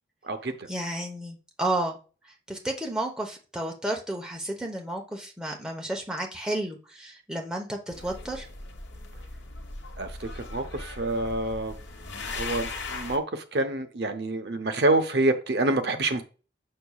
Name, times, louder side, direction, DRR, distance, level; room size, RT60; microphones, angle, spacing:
voice 1, 0.7-2.0 2.5-8.5, right 1 dB, 5° right, 0 dB, 0.9 m, -32 dB
sound 1, 7.9-13.2, left 3 dB, 75° left, 1.1 m, -38 dB
voice 2, 10.0-11.7 12.3-16.2, right 2 dB, 60° right, 8 dB, 0.7 m, -27 dB
6.9 x 6.6 x 2.3 m, 0.35 s
head